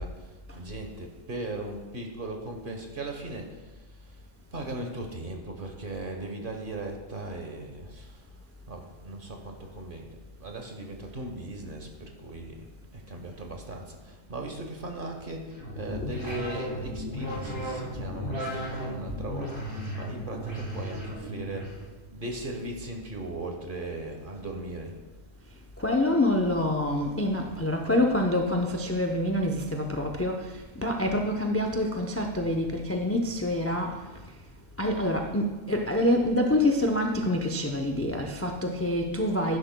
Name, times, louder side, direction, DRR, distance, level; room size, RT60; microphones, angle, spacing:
voice 1, 0.0-3.9 4.5-8.2 8.7-21.7 22.1-25.0, right 2 dB, 45° right, 3 dB, 1.2 m, -38 dB
sound 1, 15.5-21.8, equal, 85° right, 3.6 m, -35 dB
voice 2, 25.8-34.0 34.8-39.6, left 1 dB, 25° left, 3 dB, 0.3 m, -26 dB
10.5 x 10.5 x 2.2 m, 1.3 s
omnidirectional pair, 1.3 m